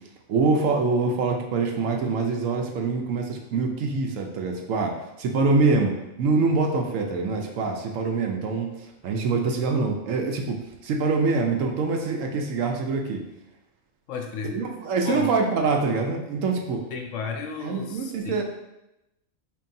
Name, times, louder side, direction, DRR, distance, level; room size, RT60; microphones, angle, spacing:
voice 1, 0.3-8.7 9.0-13.2 14.5-16.8 17.6-18.4, right 4 dB, 75° right, 2 dB, 0.9 m, -25 dB
voice 2, 14.1-14.6 15.0-15.3 16.9-18.4, left 6 dB, 70° left, 3 dB, 0.9 m, -33 dB
4.5 x 3.1 x 2.6 m, 0.91 s
omnidirectional pair, 1.4 m